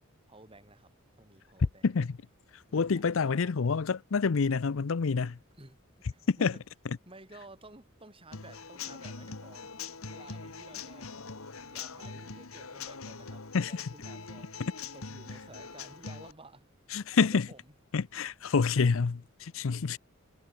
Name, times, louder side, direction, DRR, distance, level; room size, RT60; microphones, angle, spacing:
voice 1, 0.3-1.9 2.7-3.5 5.6-6.6 7.1-9.8 10.1-11.1 11.6-14.5 14.9-16.7 17.1-17.6, right 2 dB, 25° right, 5.7 m, -54 dB
voice 2, 1.8-2.2 2.5-5.4 6.3-6.5 13.5-13.9 14.6-14.7 16.9-17.5 17.9-20.0, left 5 dB, 70° left, 0.6 m, -28 dB
Human voice / Acoustic guitar / Drum, 8.3-16.3, left 5 dB, 90° left, 2.0 m, -43 dB
head